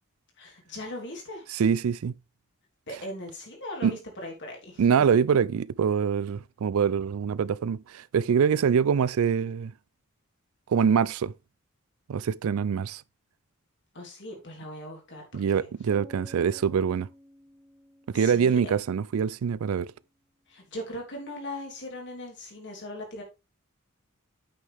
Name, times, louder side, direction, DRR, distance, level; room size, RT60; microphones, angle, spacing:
voice 1, 0.4-1.5 2.9-4.8 13.9-15.7 18.1-18.7 20.5-23.2, left 1 dB, 55° left, 3.5 m, -39 dB
voice 2, 1.5-2.1 3.8-4.0 4.8-9.7 10.7-11.3 12.1-13.0 15.3-17.1 18.1-19.9, right 7 dB, 75° right, 0.4 m, -24 dB
sound 1, 15.9-19.8, right 1 dB, 15° right, 1.7 m, -53 dB
8.6 x 6.4 x 3.5 m
head